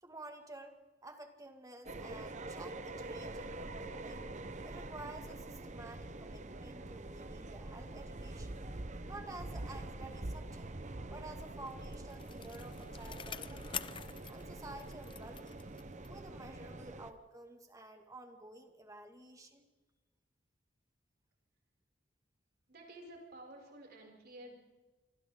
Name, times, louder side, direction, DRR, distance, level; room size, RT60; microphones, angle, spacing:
voice 1, 0.0-4.2 4.6-8.6 9.0-10.7 11.1-13.9 14.3-15.7 16.0-19.7, right 2 dB, 20° right, 5 dB, 2.2 m, -51 dB
sound 1, 1.9-17.1, right 2 dB, 40° right, 1.0 m, -45 dB
Bicycle, 11.4-16.3 16.7-16.8, left 8 dB, 30° left, 0.6 m, -47 dB
voice 2, 22.7-24.5, right 1 dB, 60° right, 0 dB, 6.5 m, -52 dB
27.0 x 24.5 x 3.9 m, 1.2 s
head